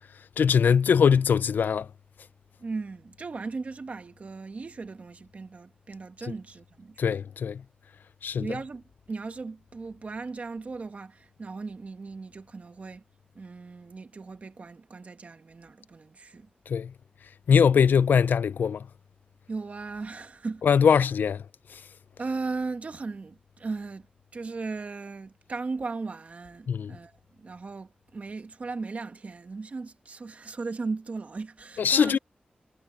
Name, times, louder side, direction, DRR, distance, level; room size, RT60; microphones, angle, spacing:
voice 1, 0.4-1.9 7.0-7.6 8.2-8.5 16.7-16.9 17.5-18.9 20.6-21.4 26.7-27.0 31.8-32.2, left 7 dB, 85° left, 0.4 m, -21 dB
voice 2, 2.6-7.1 8.4-13.0 13.4-16.5 19.5-20.7 22.2-27.1 27.4-32.2, right 4 dB, 50° right, 1.8 m, -37 dB
wide cardioid pair, 110°, 3 cm